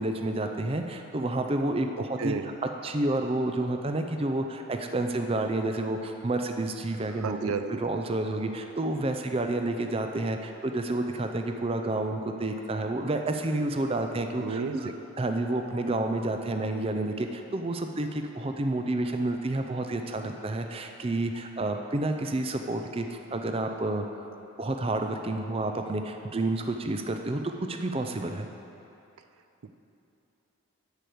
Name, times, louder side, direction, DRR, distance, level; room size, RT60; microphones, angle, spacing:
voice 1, 0.0-2.5 2.8-7.5 7.8-24.0 24.6-28.5, right 2 dB, 25° right, 5 dB, 0.5 m, -30 dB
voice 2, 2.2-2.5 7.2-7.8 14.4-15.0 29.6-29.7, right 5 dB, 85° right, 9 dB, 0.5 m, -32 dB
11.5 x 5.0 x 7.8 m, 2.9 s
head